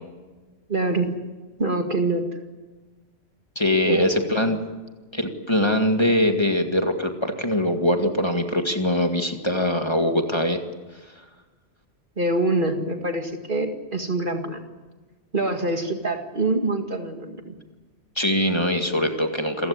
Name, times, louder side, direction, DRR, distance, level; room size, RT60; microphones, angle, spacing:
voice 1, 0.7-1.2 1.6-2.2 3.8-4.2 12.2-14.6 15.3-17.6, right 2 dB, 45° right, 5 dB, 2.2 m, -25 dB
voice 2, 3.6-4.6 5.1-10.6 18.2-19.7, left 1 dB, 25° left, 4 dB, 2.1 m, -22 dB
28.0 x 15.5 x 9.7 m, 1.3 s
omnidirectional pair, 1.2 m